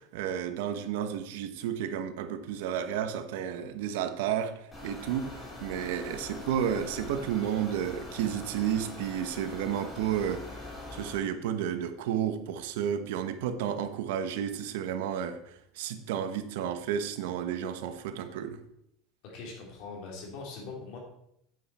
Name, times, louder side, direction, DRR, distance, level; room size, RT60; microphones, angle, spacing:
voice 1, 0.0-4.5 4.8-10.4 10.9-15.4 15.7-18.6, right 9 dB, 85° right, 9 dB, 1.1 m, -32 dB
sound 1, 4.7-11.1, left 2 dB, 15° left, 3.4 m, -43 dB
voice 2, 19.2-21.0, left 4 dB, 55° left, 0 dB, 3.3 m, -42 dB
9.3 x 8.3 x 4.2 m, 0.77 s
cardioid pair, 165°, 0 cm